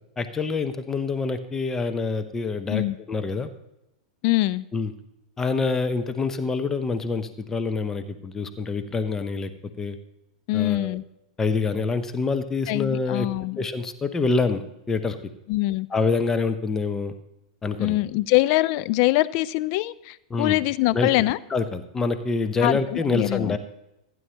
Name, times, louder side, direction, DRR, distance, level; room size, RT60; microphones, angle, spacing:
voice 1, 0.2-3.5 4.7-4.9 5.4-9.5 9.8-10.0 10.5-11.0 11.4-13.3 13.6-14.6 14.9-15.2 15.9-17.1 17.6-18.0 20.3-20.6 20.9-21.1 21.5-23.6, left 4 dB, 15° left, 9 dB, 0.7 m, -26 dB
voice 2, 4.2-4.7 10.5-11.0 12.7-13.7 15.5-15.9 17.8-21.4 22.6-23.6, left 18 dB, 40° left, 16 dB, 0.3 m, -23 dB
15.5 x 9.2 x 2.9 m, 0.88 s
figure-of-eight pair, 95°, 3 cm